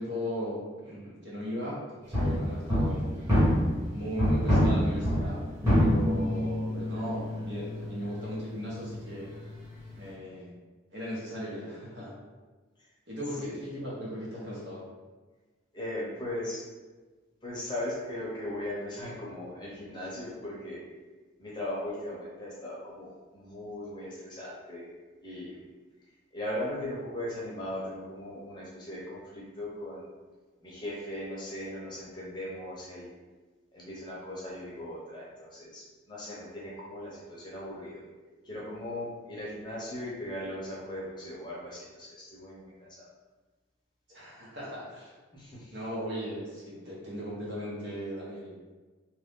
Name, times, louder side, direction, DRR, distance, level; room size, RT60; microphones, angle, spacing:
voice 1, 0.0-3.1 3.9-5.4 5.7-9.3 10.0-10.6 10.9-12.2 13.1-14.8 44.1-45.1 45.7-48.6, equal, 60° right, -6 dB, 1.1 m, -37 dB
sound 1, 2.1-3.9 4.2-10.0, equal, 15° right, 1.3 m, -27 dB
voice 2, 15.7-16.6 17.4-20.8 21.4-24.9 25.2-25.5 26.3-30.0 30.6-33.1 33.7-38.0 38.4-43.1 45.3-45.7, left 1 dB, 20° left, -6 dB, 0.8 m, -38 dB
3.0 x 2.6 x 3.6 m, 1.3 s
head